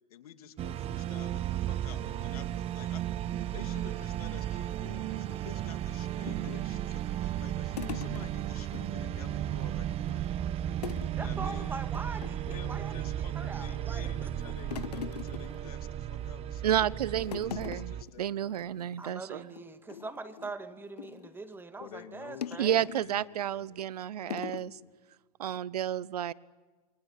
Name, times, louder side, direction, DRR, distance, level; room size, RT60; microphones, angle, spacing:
voice 1, 0.1-3.2 3.5-10.3 11.2-11.8 12.4-18.6 21.8-23.8 24.2-24.9, left 9 dB, 70° left, 8 dB, 2.8 m, -50 dB
sound 1, 0.6-18.0, right 11 dB, 30° right, 1.1 m, -34 dB
sound 2, 6.3-8.8 9.2-9.3 9.6-10.3 10.8-11.2 11.5-11.6 11.9-12.8 13.3-13.8 14.2-16.3 16.7-17.0 17.2-18.1 18.4-18.6 18.9-19.1 19.6-21.4 22.4-23.1 23.7-23.8 24.3-24.7, left 9 dB, 85° left, 0.9 m, -42 dB
voice 2, 11.1-13.1 13.4-14.3 19.0-22.9, right 3 dB, 10° right, 9 dB, 2.0 m, -42 dB
voice 3, 16.6-19.4 22.6-24.8 25.4-26.3, right 10 dB, 80° right, 21 dB, 0.8 m, -31 dB
28.5 x 24.5 x 7.4 m, 1.4 s
hypercardioid pair, 120°, 20 cm